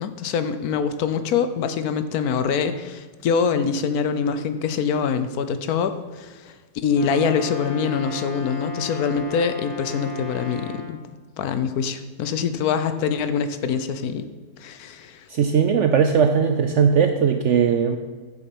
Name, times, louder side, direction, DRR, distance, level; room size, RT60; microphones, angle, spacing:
voice 1, 0.0-6.5 6.8-11.0 11.4-14.3 14.6-15.2, left 6 dB, 70° left, 10 dB, 1.1 m, -24 dB
Brass instrument, 6.9-10.9, left 4 dB, 25° left, 1.3 m, -35 dB
voice 2, 15.3-18.0, right 7 dB, 70° right, 7 dB, 0.7 m, -19 dB
8.4 x 7.1 x 5.3 m, 1.3 s
omnidirectional pair, 1.7 m